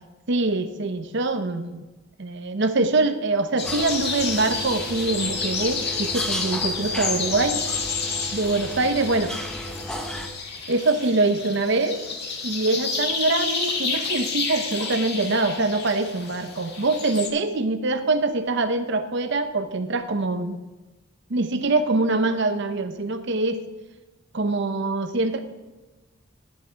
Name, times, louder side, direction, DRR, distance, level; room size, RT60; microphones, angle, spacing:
voice 1, 0.3-1.9 2.2-7.6 8.3-9.3 10.7-12.0 12.4-20.6 21.3-23.6 24.3-25.4, right 2 dB, 55° right, 8 dB, 0.8 m, -24 dB
sound 1, 3.6-17.3, left 4 dB, 50° left, 1.7 m, -30 dB
sound 2, 3.6-10.3, equal, 5° left, 0.8 m, -34 dB
11.5 x 10.5 x 4.5 m, 1.1 s
head